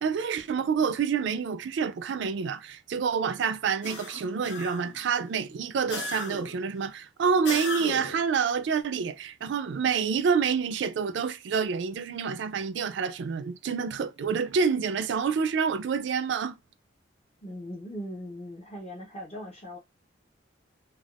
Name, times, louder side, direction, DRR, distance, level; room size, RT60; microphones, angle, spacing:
voice 1, 0.0-16.6, right 6 dB, 70° right, 0.4 m, -28 dB
sound 1, 3.8-5.0 5.9-6.6 7.4-8.3, left 3 dB, 70° left, 0.9 m, -36 dB
voice 2, 17.4-19.8, equal, 30° left, 0.7 m, -39 dB
3.4 x 2.3 x 2.4 m
head